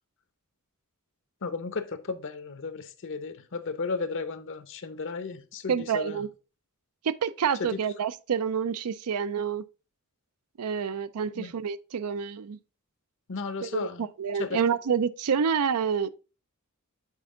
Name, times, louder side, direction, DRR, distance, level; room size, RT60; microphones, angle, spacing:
voice 1, 1.4-6.2 7.6-7.7 11.3-11.5 13.3-14.0 14.4-14.6, left 4 dB, 60° left, 0.7 m, -34 dB
voice 2, 5.7-6.3 7.0-9.6 10.6-12.6 13.6-16.1, right 7 dB, 85° right, 0.5 m, -28 dB
7.3 x 4.5 x 3.6 m
head